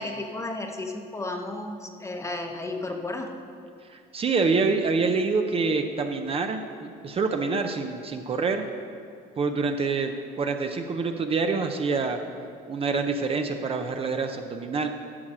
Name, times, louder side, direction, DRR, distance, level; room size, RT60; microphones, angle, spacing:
voice 1, 0.0-3.4, left 2 dB, 15° left, 4 dB, 0.9 m, -33 dB
voice 2, 3.9-8.7 9.4-12.2 12.7-14.9, right 4 dB, 35° right, 5 dB, 0.6 m, -26 dB
9.8 x 6.4 x 6.1 m, 2.3 s
cardioid pair, 110°, 17 cm